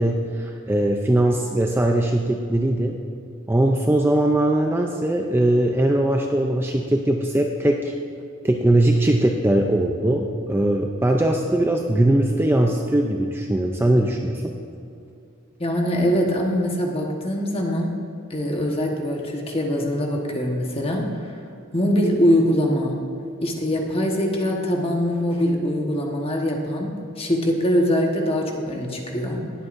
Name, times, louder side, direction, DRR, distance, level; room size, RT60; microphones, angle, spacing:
voice 1, 0.0-3.0 3.5-7.9 8.4-14.6, right 1 dB, 10° right, 2 dB, 0.4 m, -20 dB
voice 2, 15.6-17.9 18.3-21.4 21.7-22.9 23.4-29.4, equal, 25° left, 0 dB, 1.2 m, -23 dB
19.5 x 8.0 x 2.6 m, 2.5 s
head